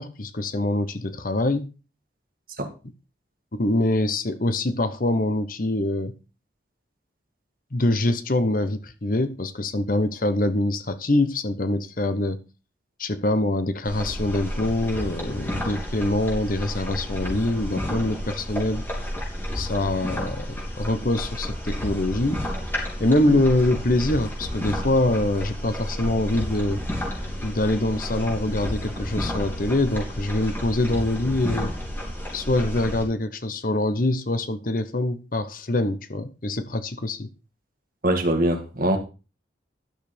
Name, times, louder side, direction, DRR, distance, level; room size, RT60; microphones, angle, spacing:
voice 1, 0.0-1.7 3.5-6.2 7.7-12.4 13.0-18.9 19.5-22.4 23.0-26.8 27.4-31.7 32.3-37.3, left 1 dB, 50° left, 1.0 m, -24 dB
sound 1, 13.8-33.0, equal, 10° left, 4.0 m, -31 dB
voice 2, 38.0-39.0, right 1 dB, 50° right, 1.9 m, -23 dB
12.0 x 6.7 x 5.1 m
head